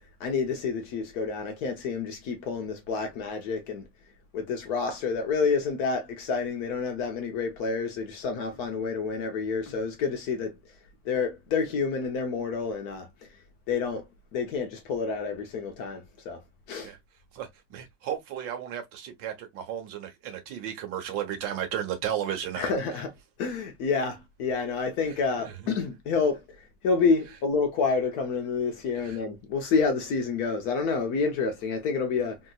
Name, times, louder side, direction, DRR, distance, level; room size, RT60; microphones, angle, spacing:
voice 1, 0.2-3.8 4.3-10.5 11.0-13.1 13.7-14.1 14.3-16.4 16.7-16.9 22.6-23.1 23.4-26.4 26.8-32.4, left 5 dB, 65° left, 1.0 m, -28 dB
voice 2, 17.3-22.7 25.4-25.8 29.0-29.2, right 10 dB, 80° right, 1.5 m, -34 dB
3.4 x 2.8 x 2.2 m
omnidirectional pair, 2.0 m